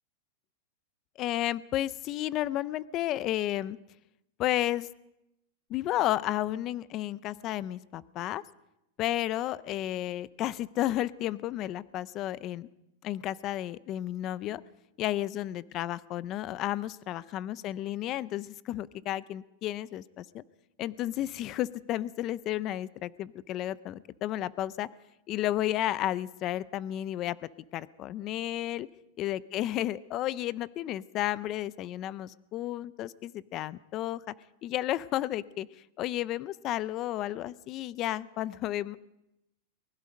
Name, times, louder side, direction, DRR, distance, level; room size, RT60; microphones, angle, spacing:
voice 1, 1.2-3.8 4.4-4.9 5.7-8.4 9.0-12.7 13.0-14.6 15.0-20.4 20.8-24.9 25.3-27.4 27.7-28.9 29.2-34.3 34.6-35.7 36.0-39.0, left 13 dB, 30° left, 18 dB, 0.6 m, -32 dB
24.0 x 20.5 x 5.3 m, 0.87 s
supercardioid pair, 155°, 0 cm